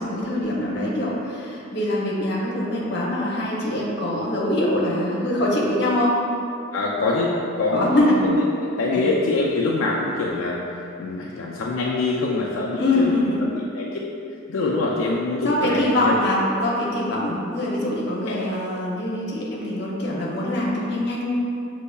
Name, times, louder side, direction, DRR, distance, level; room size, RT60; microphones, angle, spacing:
voice 1, 0.0-6.2 7.7-8.2 8.9-9.1 12.8-13.4 15.4-21.2, left 1 dB, 55° left, -4 dB, 0.7 m, -23 dB
voice 2, 6.7-7.3 7.6-13.1 13.5-13.9 14.5-16.1 18.2-18.4, left 3 dB, 80° left, -4 dB, 0.4 m, -24 dB
6.5 x 2.7 x 2.3 m, 2.7 s
head